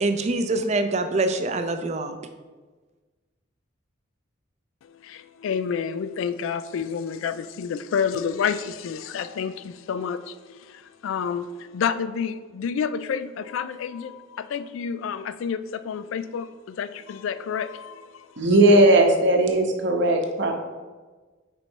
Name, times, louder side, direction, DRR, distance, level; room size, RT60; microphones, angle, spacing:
voice 1, 0.0-2.1, right 2 dB, 35° right, 7 dB, 0.4 m, -24 dB
voice 2, 4.8-18.4, left 7 dB, 75° left, 13 dB, 0.3 m, -29 dB
voice 3, 18.4-20.5, right 1 dB, 60° right, 3 dB, 0.8 m, -18 dB
5.2 x 4.3 x 4.5 m, 1.3 s
head